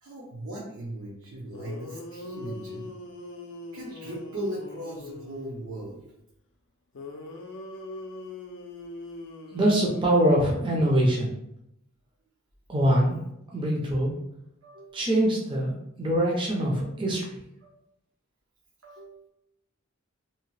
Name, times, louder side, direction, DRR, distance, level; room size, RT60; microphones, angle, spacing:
voice 1, 0.0-2.9 3.7-6.0 14.6-15.0 17.6-17.7 18.8-19.3, right 1 dB, 70° right, -6 dB, 0.7 m, -38 dB
sound 1, 1.2-1.3 1.5-5.7 6.9-11.0, left 2 dB, 60° left, 0.4 m, -42 dB
voice 2, 9.5-11.3 12.7-13.2 13.5-14.1 14.9-17.4, right 1 dB, 25° right, -3 dB, 0.5 m, -23 dB
2.8 x 2.1 x 3.0 m, 0.78 s
head